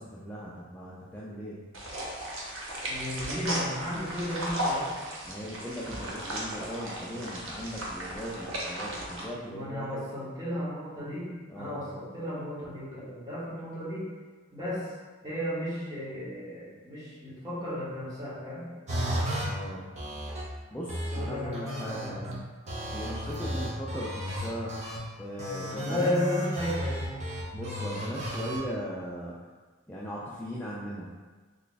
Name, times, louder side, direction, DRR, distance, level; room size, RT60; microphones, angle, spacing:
voice 1, 0.0-1.6 5.2-10.0 11.5-11.8 19.5-19.9 20.7-22.4 22.9-24.7 25.2-26.1 27.5-29.4 29.9-31.2, equal, 5° left, -7 dB, 0.3 m, -38 dB
sound 1, 1.7-9.2, right 1 dB, 80° right, 0.8 m, -35 dB
voice 2, 2.9-4.9 9.5-14.0 14.5-14.9 15.2-18.6 21.1-22.3 25.7-27.2, left 1 dB, 20° right, -9 dB, 1.2 m, -34 dB
sound 2, 18.9-19.5 20.0-20.4 20.9-22.4 22.7-25.0 25.4-28.6, equal, 35° right, 0.7 m, -34 dB
3.3 x 2.3 x 3.9 m, 1.4 s
head